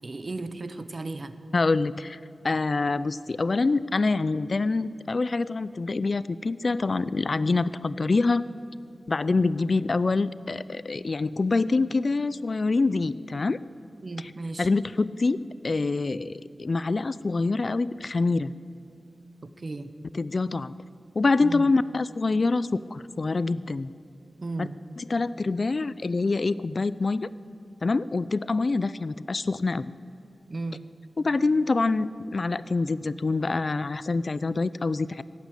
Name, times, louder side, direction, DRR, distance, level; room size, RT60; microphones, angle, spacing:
voice 1, 0.0-1.3 14.0-14.7 19.4-19.9 21.4-21.7 24.4-24.8 30.5-30.8, right 2 dB, 45° right, 11 dB, 0.9 m, -35 dB
voice 2, 1.5-2.2 2.4-8.5 9.1-13.6 14.6-18.5 20.1-20.7 21.1-23.9 24.6-24.7 25.0-27.3 27.8-29.9 31.2-35.2, left 3 dB, 50° left, 17 dB, 0.4 m, -25 dB
17.0 x 9.1 x 8.4 m, 2.6 s
cardioid pair, 60°, 0 cm